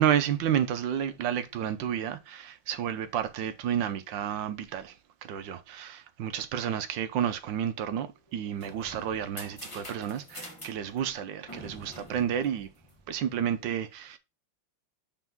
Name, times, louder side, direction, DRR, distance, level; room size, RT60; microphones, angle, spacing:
voice 1, 0.0-4.9 5.2-12.7 13.1-14.2, right 9 dB, 65° right, 1.4 m, -30 dB
sound 1, 8.3-13.3, left 1 dB, 15° left, 1.9 m, -46 dB
5.8 x 4.6 x 6.0 m
omnidirectional pair, 2.3 m